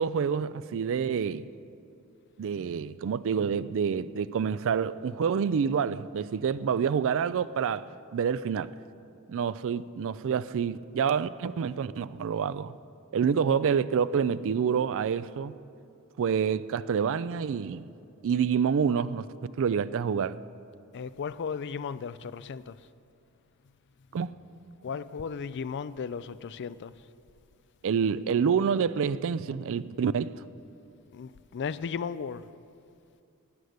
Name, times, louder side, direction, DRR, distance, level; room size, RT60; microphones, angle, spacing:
voice 1, 0.0-1.4 2.4-7.8 8.1-8.7 9.3-12.7 13.1-15.5 16.2-17.9 18.2-20.4 24.1-24.3 27.8-30.3, right 7 dB, 60° right, 0.4 m, -27 dB
voice 2, 20.9-22.8 24.8-26.9 31.1-32.5, left 6 dB, 50° left, 0.4 m, -35 dB
17.5 x 6.5 x 9.5 m
head